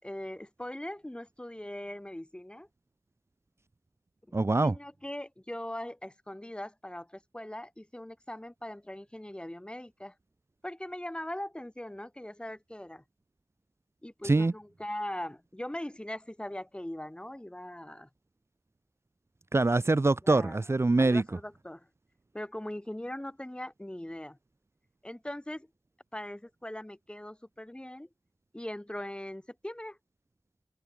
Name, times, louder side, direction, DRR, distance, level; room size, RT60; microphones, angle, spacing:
voice 1, 0.0-2.7 4.6-10.1 10.6-13.0 14.0-18.1 20.2-20.6 21.0-21.9 22.3-24.4 25.0-25.7 26.1-28.1 28.5-30.0, left 1 dB, 15° left, 6.5 m, -40 dB
voice 2, 4.3-4.7 14.2-14.5 19.5-21.2, right 2 dB, 40° right, 0.9 m, -24 dB
wide cardioid pair, 65°, 7 cm